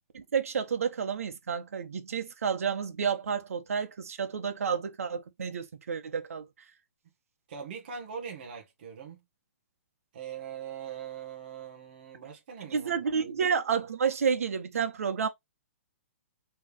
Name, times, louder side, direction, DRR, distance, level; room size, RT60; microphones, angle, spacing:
voice 1, 0.1-6.4 12.7-15.3, right 6 dB, 85° right, 1.3 m, -30 dB
voice 2, 7.5-9.2 10.1-13.3, right 7 dB, 40° right, 1.4 m, -42 dB
4.4 x 3.4 x 3.0 m
hypercardioid pair, 180°, 8 cm